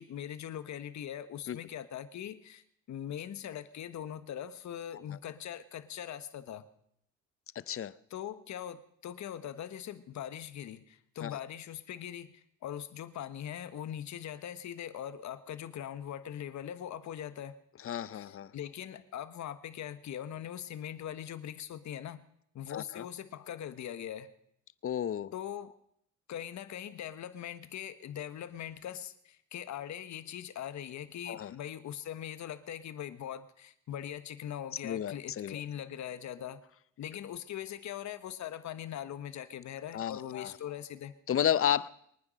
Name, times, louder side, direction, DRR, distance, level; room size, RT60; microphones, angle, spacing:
voice 1, 0.0-6.7 8.1-17.6 18.1-22.2 22.5-24.3 25.3-25.7 26.3-36.6 37.0-41.1, left 10 dB, 65° left, 1.3 m, -41 dB
voice 2, 17.8-18.5 22.7-23.1 24.8-25.3 31.3-31.5 34.8-35.6 39.9-40.5 41.3-41.9, left 10 dB, 45° left, 0.7 m, -32 dB
23.0 x 9.7 x 6.4 m
cardioid pair, 90°, 30 cm